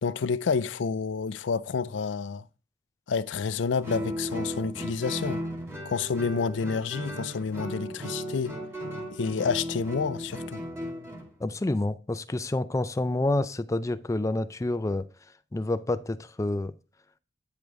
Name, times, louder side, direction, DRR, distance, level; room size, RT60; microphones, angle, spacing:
voice 1, 0.0-2.5 3.1-5.4 5.8-8.6 9.1-10.6, left 5 dB, 80° left, 0.4 m, -29 dB
Guitar, 3.8-11.3, equal, 15° right, 2.2 m, -36 dB
voice 2, 11.4-15.1 15.5-16.7, left 2 dB, 15° left, 0.4 m, -28 dB
9.3 x 5.1 x 3.5 m
head